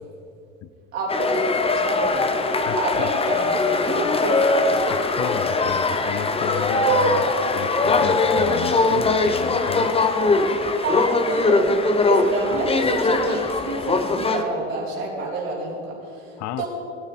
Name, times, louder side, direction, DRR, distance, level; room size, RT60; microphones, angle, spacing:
voice 1, 0.9-2.4 2.7-4.9 6.9-7.2 10.8-11.6 12.0-16.2 16.6-16.7, right 3 dB, 85° right, -6 dB, 3.5 m, -28 dB
sound 1, 1.1-14.4, left 3 dB, 15° left, 0.9 m, -21 dB
voice 2, 2.6-3.1 4.9-7.3 7.6-10.0 16.4-16.7, left 11 dB, 45° left, 14 dB, 0.7 m, -32 dB
18.0 x 9.6 x 4.3 m, 2.5 s
hypercardioid pair, 85°, 38 cm